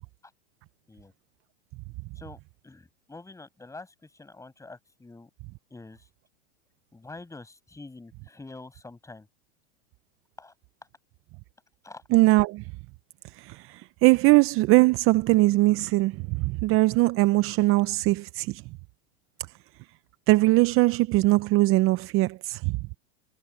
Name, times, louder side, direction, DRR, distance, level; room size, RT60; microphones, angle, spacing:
voice 1, 2.2-5.3 5.7-6.1 6.9-9.3 10.4-10.5 11.8-12.0, left 3 dB, 10° left, 7.1 m, -46 dB
voice 2, 12.1-12.6 13.3-18.6 20.3-22.8, right 20 dB, 40° right, 0.8 m, -21 dB
hypercardioid pair, 115°, 35 cm